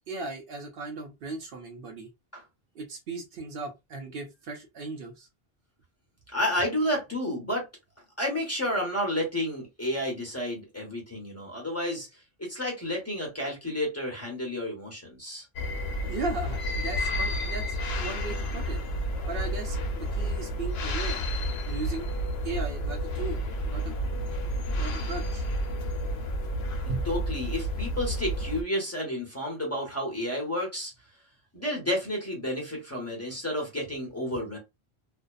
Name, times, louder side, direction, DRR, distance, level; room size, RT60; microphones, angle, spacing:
voice 1, 0.1-2.1 2.7-5.3 16.1-18.8 19.3-21.3 21.7-22.1 22.4-23.9 24.8-25.5 26.9-27.0, right 3 dB, 65° right, 0.7 m, -37 dB
voice 2, 6.3-7.7 8.2-12.1 12.4-15.4 27.0-30.9 31.5-34.6, left 1 dB, 15° left, 0.9 m, -31 dB
sound 1, 15.6-28.6, equal, 80° left, 0.8 m, -30 dB
2.5 x 2.2 x 2.3 m
omnidirectional pair, 1.1 m